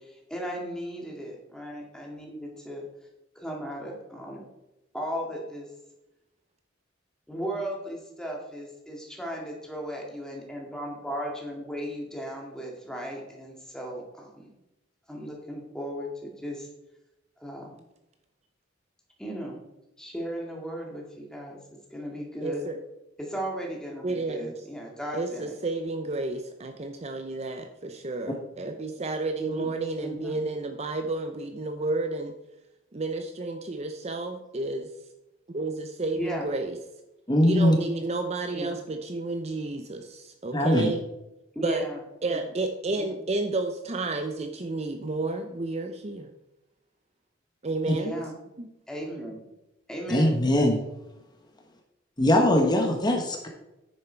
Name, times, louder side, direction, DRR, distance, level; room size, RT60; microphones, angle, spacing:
voice 1, 0.0-2.8 3.4-4.4 4.9-5.7 7.3-14.5 15.1-16.7 17.4-17.8 19.2-19.6 20.0-22.6 23.2-25.5 29.4-30.4 36.1-36.5 38.5-38.8 41.5-42.5 43.0-43.1 47.9-48.3 48.9-49.4 49.9-50.4, equal, 5° left, -1 dB, 2.0 m, -36 dB
voice 2, 22.4-22.8 24.0-24.6 25.1-32.3 32.9-34.9 35.5-36.8 37.4-41.0 41.6-41.9 42.2-46.3 47.6-48.2 48.6-48.7, right 2 dB, 35° right, 6 dB, 0.6 m, -31 dB
voice 3, 37.3-37.8 40.5-40.9 47.9-48.0 50.1-50.8 52.2-53.5, left 1 dB, 20° left, 2 dB, 1.1 m, -21 dB
9.6 x 7.0 x 4.5 m, 0.92 s
head